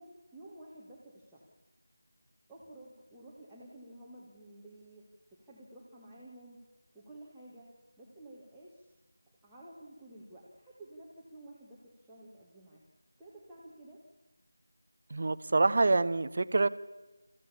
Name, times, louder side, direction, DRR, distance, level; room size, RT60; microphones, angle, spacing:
voice 1, 0.0-1.5 2.5-6.6 6.9-7.7 8.0-8.9 9.4-12.8 13.2-14.0, right 1 dB, 5° right, -9 dB, 1.6 m, -52 dB
voice 2, 15.1-16.7, right 3 dB, 40° right, 15 dB, 0.7 m, -26 dB
25.0 x 15.0 x 7.1 m, 1.1 s
figure-of-eight pair, 165°, 0 cm